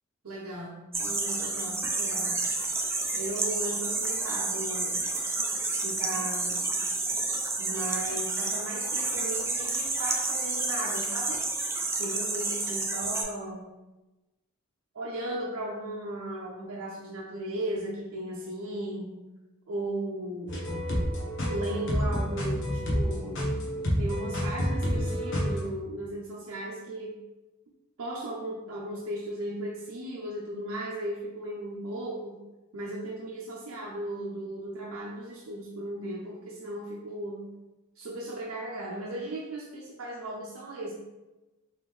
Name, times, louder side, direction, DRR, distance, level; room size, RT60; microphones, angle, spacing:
voice 1, 0.2-2.4 3.1-5.0 5.7-6.7 7.6-11.4 11.9-13.7 14.9-19.1 19.7-20.7 21.5-23.5 24.0-27.2 28.0-32.4 32.7-37.5 38.0-40.9, right 1 dB, 85° right, -4 dB, 0.5 m, -36 dB
sound 1, 0.9-13.2, right 3 dB, 10° right, 0.4 m, -30 dB
sound 2, 20.5-25.6, equal, 60° left, 0.9 m, -29 dB
3.6 x 3.1 x 3.1 m, 1.1 s
head